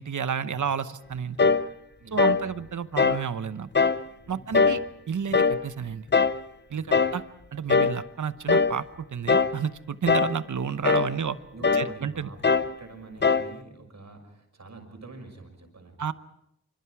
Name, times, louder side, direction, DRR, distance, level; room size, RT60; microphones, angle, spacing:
voice 1, 0.0-1.5 2.1-3.7 4.3-4.8 5.1-6.1 6.7-7.2 7.5-11.4 11.7-12.3 16.0-16.1, right 7 dB, 85° right, 13 dB, 1.0 m, -31 dB
sound 1, 1.4-1.7 2.2-2.5 3.0-3.3 3.7-4.0 4.5-4.9 5.3-5.6 6.1-6.4 6.9-7.2 7.7-8.0 8.5-8.8 9.3-9.6 10.1-10.4 10.8-11.1 11.6-11.9 12.4-12.7 13.2-13.5, left 4 dB, 35° left, 0.7 m, -21 dB
voice 2, 2.0-2.6 4.2-4.7 6.7-7.0 11.1-12.5 12.8-16.1, right 3 dB, 65° right, 4 dB, 6.0 m, -46 dB
26.5 x 25.5 x 4.8 m, 0.81 s
wide cardioid pair, 90°, 29 cm